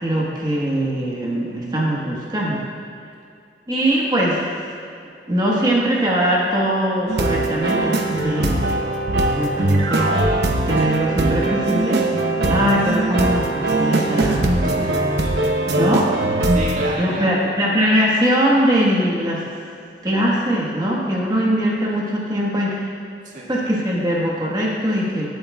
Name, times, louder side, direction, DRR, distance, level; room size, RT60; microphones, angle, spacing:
voice 1, 0.0-2.7 3.7-4.7 5.3-8.6 9.3-10.1 10.6-12.0 12.5-14.5 15.8-16.1 17.0-19.4 20.0-22.8 23.5-25.3, equal, 25° right, -4 dB, 1.4 m, -21 dB
sound 1, 7.1-16.9, right 2 dB, 70° right, 0.9 m, -20 dB
voice 2, 14.6-15.7 16.5-17.3 23.2-23.5, right 1 dB, 45° right, -5 dB, 1.8 m, -31 dB
19.5 x 7.8 x 2.4 m, 2.5 s
head